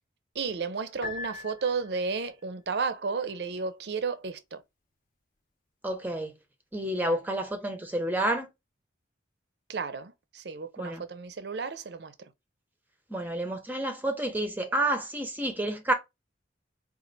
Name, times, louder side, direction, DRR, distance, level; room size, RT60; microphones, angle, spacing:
voice 1, 0.3-4.6 9.7-12.1, right 5 dB, 60° right, 0.5 m, -33 dB
Piano, 1.0-2.3, left 4 dB, 45° left, 0.7 m, -40 dB
voice 2, 5.8-6.3 6.7-8.5 10.8-11.0 13.1-15.9, right 1 dB, 10° right, 0.6 m, -29 dB
4.2 x 2.4 x 3.9 m
head